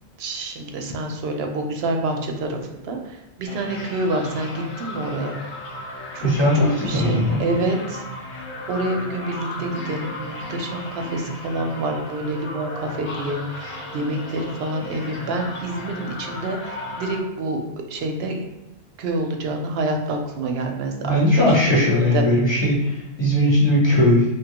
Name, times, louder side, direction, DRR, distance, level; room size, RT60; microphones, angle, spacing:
voice 1, 0.2-5.4 6.1-6.3 6.8-8.0 8.7-17.6 17.9-18.4 19.0-22.2, right 2 dB, 70° right, 3 dB, 0.8 m, -27 dB
sound 1, 3.4-17.2, left 1 dB, 80° left, 1.0 m, -35 dB
voice 2, 6.2-7.4 21.0-24.2, left 1 dB, 25° left, -6 dB, 1.0 m, -18 dB
3.1 x 2.2 x 2.8 m, 0.98 s
omnidirectional pair, 1.1 m